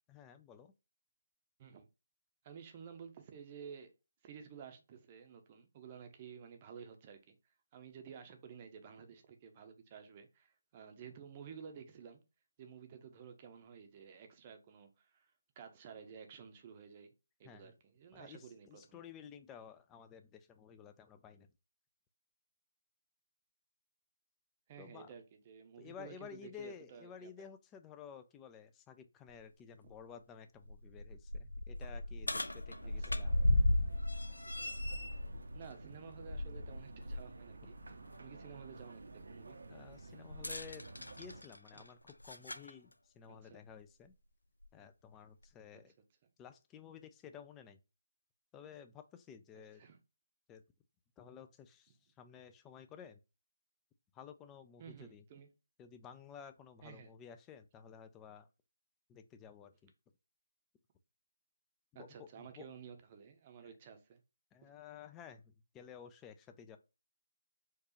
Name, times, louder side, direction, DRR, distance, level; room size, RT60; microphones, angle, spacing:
voice 1, 0.1-0.7 17.4-17.7 18.1-21.5 24.8-25.1 25.8-33.3 39.7-42.0 42.2-44.1 44.7-45.9 46.4-47.8 48.5-49.8 50.5-50.6 51.2-53.2 54.1-55.2 55.8-58.5 59.1-59.9 62.0-62.7 64.5-66.8, left 8 dB, 15° left, 0.4 m, -53 dB
voice 2, 2.4-3.9 4.2-12.2 12.6-17.1 17.4-19.0 24.7-27.5 32.8-33.2 35.5-37.8 38.2-39.6 41.7-41.8 43.3-43.6 45.7-45.8 49.7-50.0 54.8-55.5 56.8-57.1 61.9-64.2 64.6-64.7, right 7 dB, 30° right, 0.7 m, -53 dB
sound 1, 29.3-29.4 29.9-30.0 30.6-37.3 37.7-37.9 40.3-42.7 43.7-43.8 44.6-44.7, left 1 dB, 85° left, 0.4 m, -36 dB
sound 2, 32.7-41.4, right 3 dB, 70° right, 0.7 m, -53 dB
4.5 x 2.4 x 3.0 m
figure-of-eight pair, 150°, 0 cm